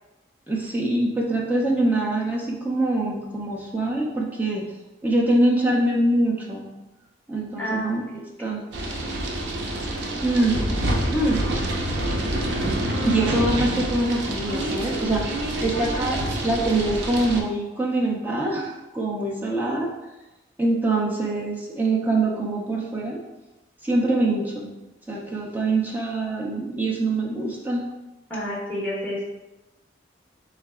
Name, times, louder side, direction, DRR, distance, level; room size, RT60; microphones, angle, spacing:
voice 1, 0.5-4.6 5.0-6.7 7.3-8.6 10.2-10.6 11.1-11.4 12.6-12.8 13.0-19.9 20.6-23.2 23.8-24.7 25.1-27.8, right 2 dB, 10° right, -3 dB, 0.5 m, -24 dB
voice 2, 7.6-7.9 8.4-8.6 28.3-29.2, equal, 10° left, -6 dB, 1.3 m, -29 dB
sound 1, 8.7-17.4, right 1 dB, 70° right, 0.6 m, -27 dB
3.9 x 3.2 x 3.6 m, 1.0 s
head